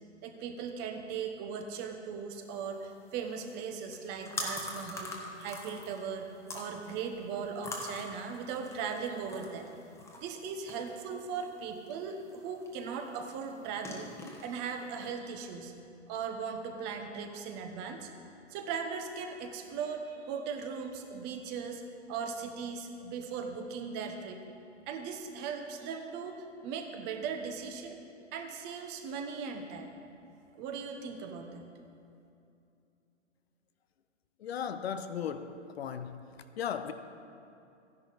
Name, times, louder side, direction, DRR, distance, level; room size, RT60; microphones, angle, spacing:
voice 1, 0.2-6.3 6.5-9.7 10.2-14.1 14.4-15.7 16.1-18.1 18.5-21.8 22.1-24.4 24.9-28.0 28.3-29.9 30.5-31.7, right 6 dB, 30° right, 1.1 m, -38 dB
sound 1, 2.4-15.1, left 1 dB, 10° left, 1.2 m, -45 dB
voice 2, 34.4-36.2 36.6-36.9, left 8 dB, 60° left, 0.7 m, -36 dB
14.0 x 10.5 x 4.1 m
figure-of-eight pair, 120°, 35 cm